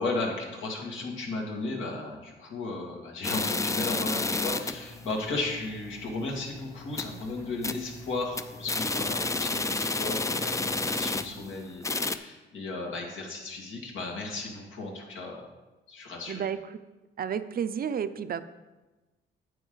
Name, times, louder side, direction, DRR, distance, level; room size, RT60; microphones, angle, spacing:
voice 1, 0.0-15.4 15.9-16.5, left 3 dB, 80° left, -1 dB, 2.4 m, -35 dB
sound 1, 3.2-4.9 5.3-5.4 5.7-5.8 6.2-6.4 6.8-7.2 7.6-7.9 8.2-11.5 11.8-12.2, left 3 dB, 15° left, 0.5 m, -30 dB
sound 2, 4.5-11.3, right 1 dB, 60° left, 3.6 m, -47 dB
voice 2, 17.2-18.4, right 8 dB, 50° right, 12 dB, 0.6 m, -31 dB
9.1 x 8.5 x 4.0 m, 1.1 s
cardioid pair, 90°, 20 cm